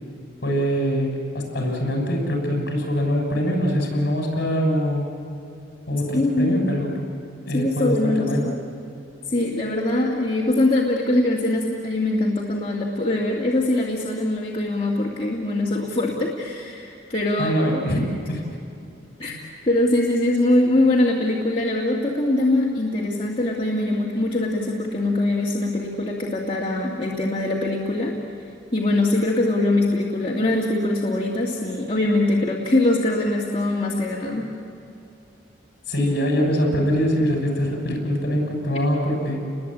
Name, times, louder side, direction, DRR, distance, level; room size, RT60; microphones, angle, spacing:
voice 1, 0.4-5.1 5.9-7.0 7.4-8.5 17.4-18.4 19.3-19.4 35.9-39.4, equal, 55° left, 1 dB, 6.3 m, -23 dB
voice 2, 6.1-6.5 7.5-8.5 9.3-17.6 19.2-28.1 28.7-34.5, left 2 dB, 30° left, -4 dB, 2.2 m, -22 dB
30.0 x 21.5 x 8.7 m, 2.5 s
head